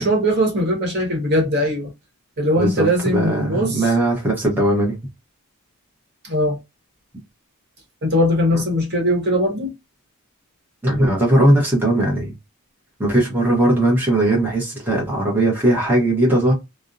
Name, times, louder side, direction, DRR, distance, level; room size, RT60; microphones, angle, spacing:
voice 1, 0.0-1.9 2.4-3.9 6.2-6.6 8.0-9.7, equal, 50° right, 0.9 m, -20 dB
voice 2, 2.6-5.0 10.8-12.3 13.0-16.5, right 1 dB, 10° right, 0.8 m, -18 dB
2.5 x 2.0 x 2.4 m
head